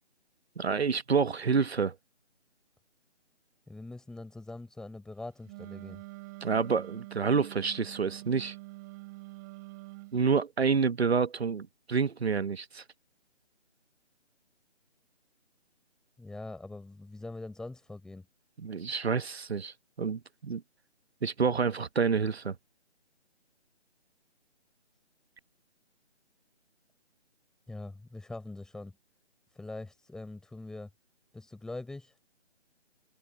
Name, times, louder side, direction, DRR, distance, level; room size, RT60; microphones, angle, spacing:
voice 1, 0.6-1.9 6.4-8.6 10.1-12.8 18.6-20.6 21.2-22.6, right 5 dB, 65° right, 1.2 m, -28 dB
voice 2, 3.7-6.0 16.2-18.3 27.7-29.0 29.5-30.9 31.3-32.1, left 2 dB, ahead, 4.1 m, -43 dB
Wind instrument woodwind instrument, 5.4-10.2, right 23 dB, 15° right, 6.1 m, -46 dB
figure-of-eight pair, 155°, 35 cm